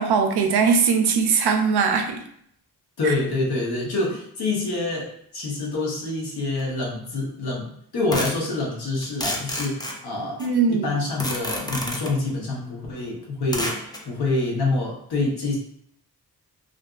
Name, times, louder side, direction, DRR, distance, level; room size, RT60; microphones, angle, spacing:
voice 1, 0.0-2.2 3.0-3.1 10.4-10.9, right 5 dB, 85° right, 5 dB, 0.5 m, -20 dB
voice 2, 3.0-10.4 10.7-15.6, left 2 dB, 80° left, -2 dB, 0.9 m, -26 dB
sound 1, 6.6-6.7 8.1-8.4 9.0-10.5 11.2-12.2 13.5-14.0, left 1 dB, 10° left, 0.4 m, -29 dB
2.5 x 2.4 x 2.3 m, 0.67 s
cardioid pair, 80°, 38 cm